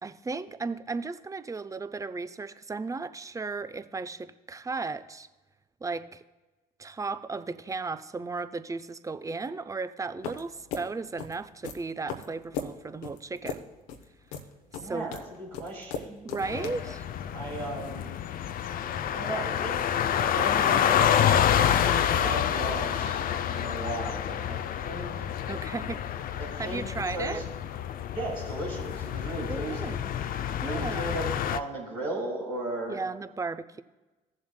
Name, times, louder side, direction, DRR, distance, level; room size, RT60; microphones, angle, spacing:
voice 1, 0.0-5.3 5.8-6.2 6.8-13.6 14.7-15.1 16.2-17.0 25.5-26.0 26.6-27.4 29.5-30.0 30.6-31.1 32.9-33.8, right 4 dB, 15° right, 12 dB, 0.6 m, -35 dB
sound 1, 10.2-16.7, left 5 dB, 75° left, 0.9 m, -38 dB
voice 2, 14.8-16.9 17.3-18.2 19.1-19.8 20.2-21.0 21.5-25.1 26.4-27.5 28.1-30.1 30.6-33.0, right 2 dB, 85° right, -4 dB, 2.4 m, -36 dB
sound 2, 16.4-31.6, left 9 dB, 50° left, 0.5 m, -28 dB
16.5 x 7.4 x 2.2 m, 1.2 s
hypercardioid pair, 50°, 19 cm